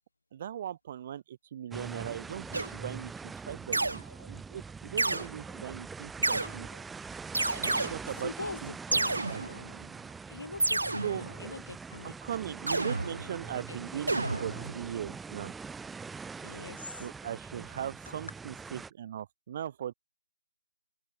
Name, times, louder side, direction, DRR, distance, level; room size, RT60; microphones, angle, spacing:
voice 1, 0.3-6.7 7.6-8.3 8.6-9.0 9.3-9.5 11.0-11.2 12.0-15.5 17.0-19.9, right 10 dB, 25° right, 1.3 m, -39 dB
sound 1, 1.7-18.9, right 5 dB, 5° right, 0.8 m, -43 dB
sound 2, 2.5-3.0 3.7-4.3 5.0-5.3 6.2-6.8 7.3-8.2 8.9-9.8 10.6-11.5 12.7-13.6 14.1-15.0, right 2 dB, 90° right, 1.9 m, -30 dB
voice 2, 8.2-9.2 10.3-12.2 13.7-14.0 16.4-17.1 18.1-18.2, left 3 dB, 75° left, 5.3 m, -42 dB
open air
figure-of-eight pair, 170°, 0 cm